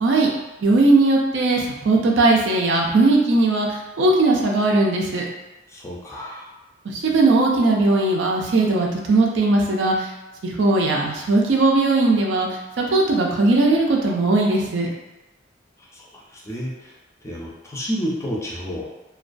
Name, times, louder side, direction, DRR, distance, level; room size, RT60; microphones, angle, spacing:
voice 1, 0.6-3.7 4.0-5.3 6.9-9.9 10.4-12.5 12.8-14.9, right 2 dB, 70° right, -1 dB, 0.4 m, -18 dB
voice 2, 5.7-6.4 15.9-17.0 17.2-18.9, equal, 15° left, -4 dB, 0.4 m, -30 dB
2.2 x 2.2 x 2.4 m, 1.0 s
head